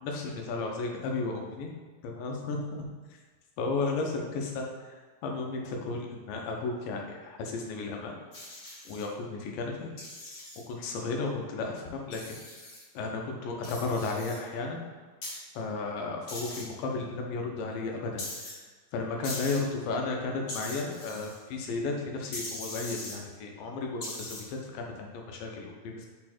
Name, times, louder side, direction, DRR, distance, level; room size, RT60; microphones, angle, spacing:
voice 1, 0.0-1.7 2.0-2.8 3.6-4.7 5.2-5.6 5.9-6.0 6.3-8.2 8.9-9.9 10.7-12.4 12.9-14.8 15.6-18.2 18.9-26.1, left 3 dB, 85° left, 1 dB, 2.6 m, -33 dB
sound 1, 8.3-9.1 10.0-10.6 12.1-12.8 13.6-14.4 15.2-15.4 16.3-16.6 18.2-18.5 19.2-19.6 20.5-21.4 22.3-23.2 24.0-24.4, left 2 dB, 65° left, 1.0 m, -40 dB
5.6 x 4.3 x 4.3 m, 1.4 s
omnidirectional pair, 3.9 m